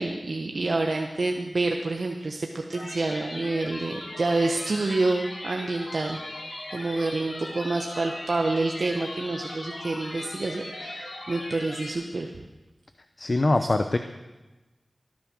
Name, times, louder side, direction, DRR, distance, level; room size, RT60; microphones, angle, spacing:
voice 1, 0.0-12.3, right 2 dB, 70° right, 2 dB, 1.1 m, -28 dB
sound 1, 2.7-11.9, left 1 dB, 80° left, 3.7 m, -38 dB
voice 2, 13.2-14.0, left 2 dB, 50° left, 8 dB, 0.7 m, -23 dB
18.0 x 10.5 x 6.2 m, 1.1 s
wide cardioid pair, 50°, 0 cm